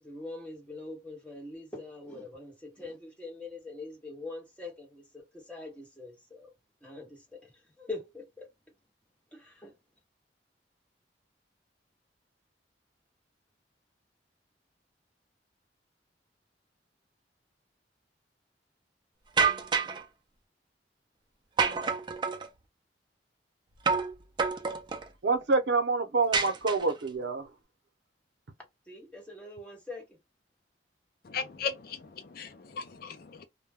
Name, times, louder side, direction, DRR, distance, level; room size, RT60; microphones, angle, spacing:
voice 1, 0.0-6.5 6.8-7.5 7.8-8.5 9.3-9.7 28.9-30.2, left 2 dB, 5° left, 0.9 m, -43 dB
sound 1, 19.4-20.0 21.6-22.5 23.9-24.1 24.4-25.1 26.3-27.1, right 5 dB, 25° right, 0.4 m, -28 dB
voice 2, 25.2-27.5, right 3 dB, 75° right, 0.6 m, -27 dB
voice 3, 31.2-33.5, left 5 dB, 55° left, 0.4 m, -37 dB
2.2 x 2.1 x 3.3 m
head